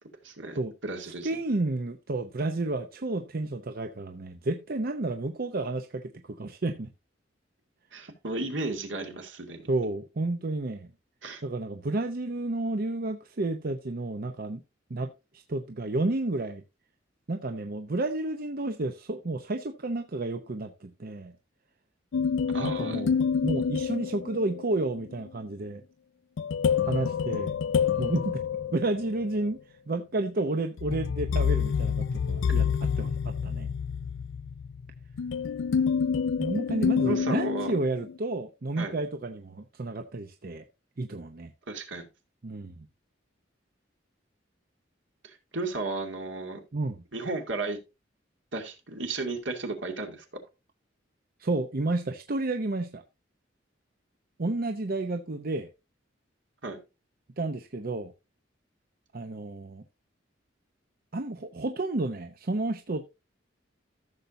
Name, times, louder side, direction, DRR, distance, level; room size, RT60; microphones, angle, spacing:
voice 1, 0.2-1.3 7.9-9.6 11.2-11.4 22.5-23.0 37.0-37.8 38.8-38.9 41.7-42.1 45.2-46.6 47.1-47.8 48.5-50.2 56.6-56.8, right 3 dB, 80° right, 2.5 m, -34 dB
voice 2, 1.0-6.9 9.7-10.9 11.4-14.6 14.9-16.6 17.3-21.3 22.6-25.8 26.8-27.6 28.0-28.4 28.7-29.6 29.9-32.7 33.0-33.7 36.4-40.6 41.0-41.5 42.4-42.9 46.7-47.0 51.4-53.0 54.4-55.7 57.4-58.1 59.1-59.8 61.1-63.1, right 2 dB, 50° right, 0.7 m, -31 dB
sound 1, 22.1-24.7 26.4-29.3 30.8-38.1, left 6 dB, 85° left, 0.4 m, -28 dB
14.5 x 6.9 x 2.7 m
head